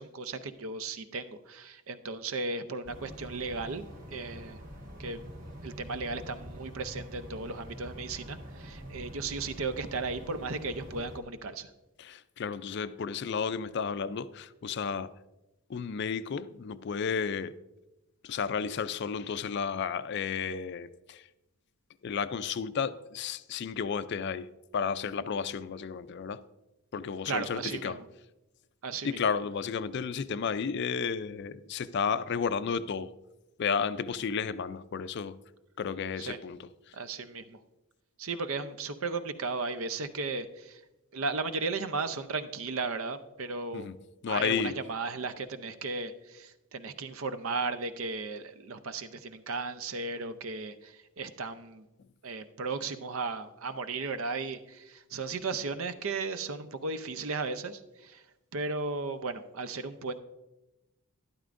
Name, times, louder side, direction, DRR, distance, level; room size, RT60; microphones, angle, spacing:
voice 1, 0.0-4.6 5.0-5.2 5.6-11.7 27.3-28.1 28.8-29.2 36.2-36.4 36.9-37.6 38.2-40.8 41.1-43.9 44.3-51.9 52.2-58.2 58.5-60.2, right 3 dB, 70° right, 0.6 m, -35 dB
sound 1, 2.8-11.2, equal, 40° right, 1.4 m, -45 dB
voice 2, 12.0-15.1 15.7-17.5 18.2-21.2 22.0-26.4 26.9-28.0 29.0-33.1 33.6-35.4 35.8-36.7 43.7-44.0 44.2-44.8, left 6 dB, 50° left, 0.4 m, -32 dB
12.5 x 11.5 x 2.5 m
head